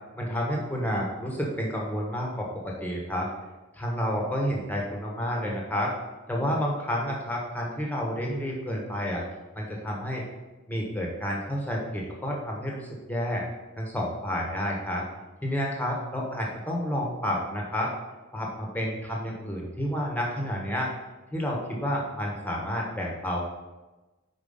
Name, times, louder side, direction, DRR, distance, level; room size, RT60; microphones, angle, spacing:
voice 1, 0.1-3.3 3.7-5.9 6.3-9.2 9.5-10.2 10.7-13.4 13.8-15.0 15.4-17.9 18.3-20.9 21.3-23.4, equal, 10° left, -2 dB, 1.2 m, -30 dB
5.0 x 4.6 x 5.5 m, 1.1 s
head